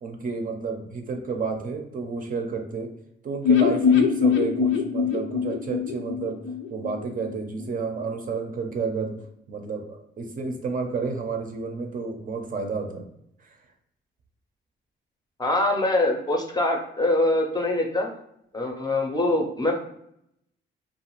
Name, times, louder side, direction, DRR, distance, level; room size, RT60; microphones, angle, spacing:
voice 1, 0.0-2.9 3.2-6.4 6.7-9.1 9.5-13.1 13.4-13.5, right 4 dB, 45° right, 4 dB, 0.5 m, -30 dB
sound 1, 3.4-7.3 7.6-7.7 8.0-8.1, left 6 dB, 75° left, 0.5 m, -22 dB
voice 2, 15.4-18.1 18.5-19.8, left 2 dB, 20° left, 2 dB, 0.5 m, -24 dB
2.4 x 2.3 x 3.0 m, 0.75 s
cardioid pair, 90°, 20 cm